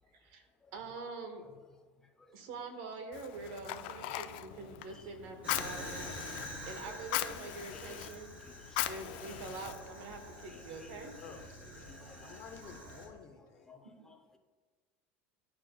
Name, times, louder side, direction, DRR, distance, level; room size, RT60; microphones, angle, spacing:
voice 1, 0.1-0.4 0.7-1.4 2.3-6.1 6.6-8.3 8.9-11.2 14.0-14.1, right 3 dB, 75° right, 1.0 m, -45 dB
voice 2, 2.0-2.4 4.1-4.2 4.9-5.1 5.6-6.2 6.9-9.6 10.5-11.4 11.8-12.4 13.4-14.4, left 2 dB, 10° left, 0.6 m, -58 dB
Fire, 3.1-10.3, left 15 dB, 75° left, 0.3 m, -40 dB
sound 1, 3.3-7.1 8.8-13.2, right 2 dB, 90° right, 1.4 m, -56 dB
Fire 2, 5.4-13.1, left 1 dB, 25° right, 1.8 m, -47 dB
voice 3, 11.2-11.9 12.2-13.7, left 7 dB, 50° left, 0.7 m, -52 dB
10.5 x 4.4 x 2.2 m
supercardioid pair, 115°, 6 cm